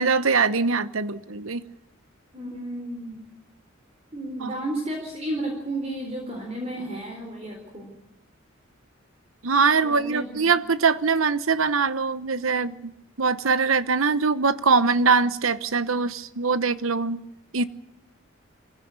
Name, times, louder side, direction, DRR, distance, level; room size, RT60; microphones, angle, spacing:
voice 1, 0.0-1.6 4.4-4.5 9.4-12.9 13.2-17.2 17.5-17.6, right 4 dB, 80° right, 1.0 m, -22 dB
voice 2, 2.3-3.2 4.1-7.9 9.8-10.5, right 1 dB, 30° right, 4.1 m, -32 dB
23.0 x 16.0 x 9.5 m
head